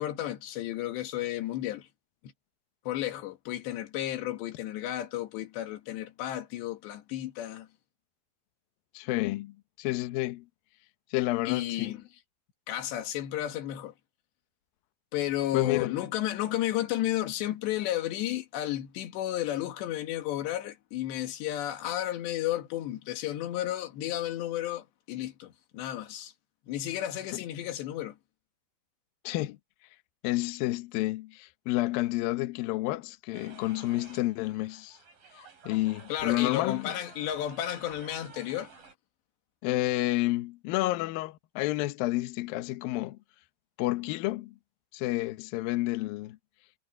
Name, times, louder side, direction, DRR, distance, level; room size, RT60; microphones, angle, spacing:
voice 1, 0.0-1.9 2.9-7.7 11.5-12.0 12.7-13.9 15.1-26.3 26.7-28.2 36.1-38.7, left 13 dB, 70° left, 3.7 m, -32 dB
voice 2, 8.9-10.5 11.1-12.0 15.5-16.0 29.2-29.6 30.2-35.0 35.6-36.9 39.6-43.2 43.8-44.6 44.9-46.4, left 18 dB, 90° left, 2.0 m, -30 dB
sound 1, 33.3-38.9, right 5 dB, 50° right, 7.9 m, -51 dB
omnidirectional pair, 5.4 m